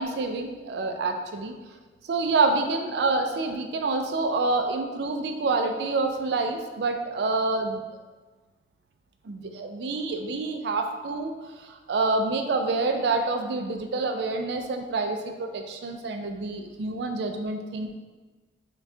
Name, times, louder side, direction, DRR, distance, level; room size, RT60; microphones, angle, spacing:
voice 1, 0.0-1.5 2.1-7.8 9.2-11.3 11.6-17.9, right 3 dB, 65° right, 5 dB, 0.4 m, -27 dB
4.7 x 2.3 x 2.6 m, 1.3 s
head